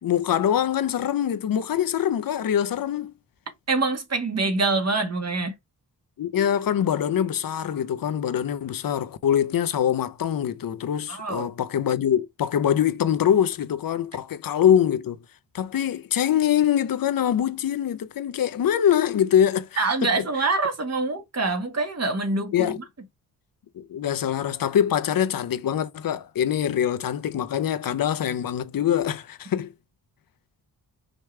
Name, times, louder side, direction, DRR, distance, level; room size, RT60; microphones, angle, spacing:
voice 1, 0.0-3.1 6.2-15.2 15.5-20.2 22.5-22.8 23.7-29.7, left 9 dB, 65° left, 0.8 m, -24 dB
voice 2, 3.7-5.5 11.1-11.5 19.8-22.8, right 3 dB, 45° right, 1.6 m, -25 dB
5.1 x 3.1 x 3.2 m
cardioid pair, 65°, 37 cm